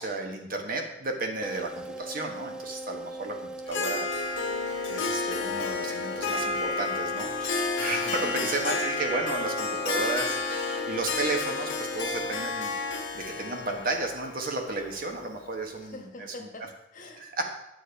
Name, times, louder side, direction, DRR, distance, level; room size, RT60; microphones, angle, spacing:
voice 1, 0.0-4.1 4.9-12.7 13.1-16.1 16.4-16.5 17.2-17.5, right 2 dB, 45° right, 3 dB, 1.2 m, -33 dB
sound 1, 1.4-13.1, right 2 dB, 5° right, 0.3 m, -40 dB
Harp, 3.7-15.5, left 4 dB, 75° left, 1.3 m, -31 dB
voice 2, 8.0-8.9 15.7-17.3, left 2 dB, 40° left, 3 dB, 1.2 m, -44 dB
9.3 x 6.9 x 4.5 m, 0.89 s
head